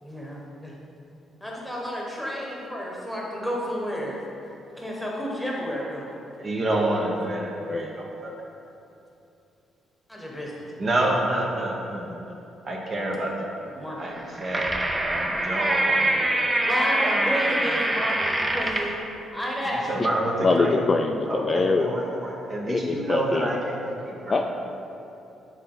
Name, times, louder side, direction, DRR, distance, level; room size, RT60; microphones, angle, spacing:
voice 1, 0.0-0.7 1.4-4.2 4.7-6.1 10.1-10.7 13.7-14.0 16.6-19.0 19.3-20.1, equal, ahead, -3 dB, 1.3 m, -31 dB
voice 2, 6.4-8.3 10.8-12.3 12.6-13.6 14.0-14.7 15.1-16.6 17.0-17.1 19.9-20.8 21.3-24.4, right 1 dB, 40° right, -1 dB, 1.0 m, -28 dB
sound 1, 14.1-19.0, right 1 dB, 15° right, 0.5 m, -24 dB
voice 3, 20.4-21.9 22.7-23.5 24.3-24.4, left 3 dB, 35° left, 4 dB, 0.3 m, -23 dB
6.5 x 4.2 x 4.0 m, 2.9 s
cardioid pair, 90°, 0 cm